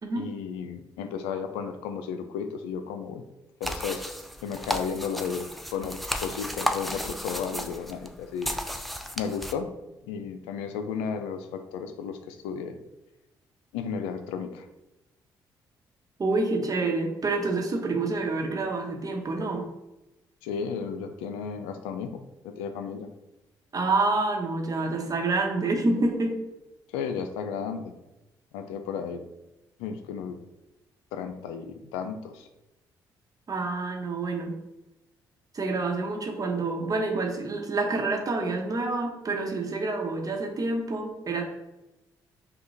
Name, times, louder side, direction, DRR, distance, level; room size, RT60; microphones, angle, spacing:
voice 1, 0.1-3.2 3.6-4.0 4.4-8.6 9.2-9.7 10.1-12.8 13.7-14.7 20.4-23.1 26.9-27.9 28.5-29.2 29.8-30.4 31.1-32.5, left 6 dB, 85° left, 8 dB, 0.4 m, -33 dB
sound 1, 3.6-9.5, equal, ahead, 0.4 m, -34 dB
voice 2, 16.2-19.7 23.7-26.4 33.5-34.5 35.5-41.4, right 3 dB, 40° right, 3 dB, 0.9 m, -27 dB
5.3 x 2.3 x 3.2 m, 0.97 s
supercardioid pair, 55°, 9 cm